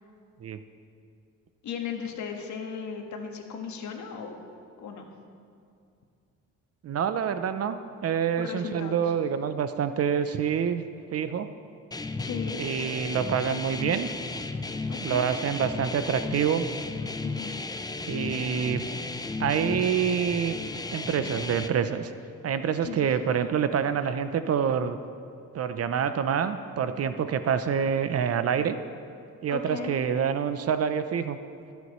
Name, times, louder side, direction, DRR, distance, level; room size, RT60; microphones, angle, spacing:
voice 1, 1.6-4.4 4.8-5.0 8.4-9.0 12.2-12.6 14.9-15.3 17.2-17.5 22.8-23.1 29.5-29.9, left 6 dB, 75° left, 3 dB, 1.6 m, -36 dB
voice 2, 6.8-7.8 8.0-10.8 11.1-11.5 12.6-14.1 15.0-16.7 18.1-18.9 19.4-20.6 20.9-22.1 22.4-25.0 25.5-28.8 29.4-31.4, right 7 dB, 55° right, 10 dB, 0.7 m, -27 dB
sound 1, 11.9-21.7, left 3 dB, 15° left, 0.6 m, -34 dB
24.5 x 8.3 x 3.2 m, 2.4 s
cardioid pair, 90°, 30 cm